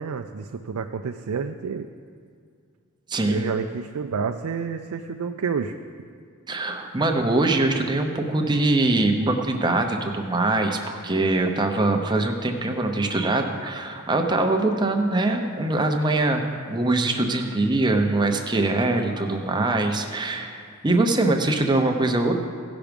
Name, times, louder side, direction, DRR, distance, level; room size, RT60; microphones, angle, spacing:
voice 1, 0.0-1.9 3.3-5.7, right 5 dB, 85° right, 6 dB, 0.4 m, -29 dB
voice 2, 3.1-3.5 6.5-22.3, right 2 dB, 20° right, 3 dB, 0.8 m, -23 dB
16.5 x 6.0 x 5.2 m, 2.2 s
head